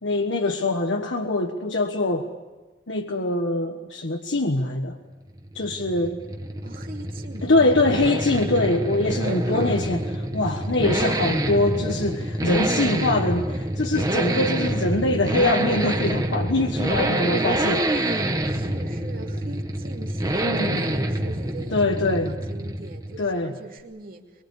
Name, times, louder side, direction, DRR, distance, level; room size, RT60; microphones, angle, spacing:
voice 1, 0.0-2.3 2.9-5.0 5.5-6.2 7.4-18.3 20.4-20.8 21.7-22.3 23.2-23.5, left 2 dB, 90° left, 3 dB, 1.4 m, -23 dB
sound 1, 5.3-23.3, right 1 dB, 20° right, 1.5 m, -27 dB
voice 2, 6.6-7.8 9.2-9.9 18.4-24.4, right 2 dB, 50° right, 2 dB, 2.8 m, -41 dB
23.5 x 23.5 x 8.4 m, 1.2 s
head